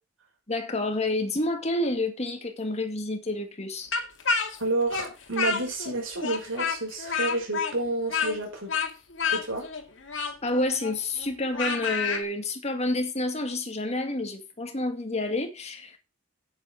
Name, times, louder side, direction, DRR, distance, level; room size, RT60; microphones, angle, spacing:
voice 1, 0.5-3.9 10.4-16.0, left 2 dB, 35° left, 2.0 m, -29 dB
Speech, 3.9-5.9 6.2-12.2, left 5 dB, 65° left, 2.3 m, -29 dB
voice 2, 4.6-8.7 9.3-9.7, right 2 dB, 85° right, 5.9 m, -30 dB
9.6 x 9.4 x 4.9 m
head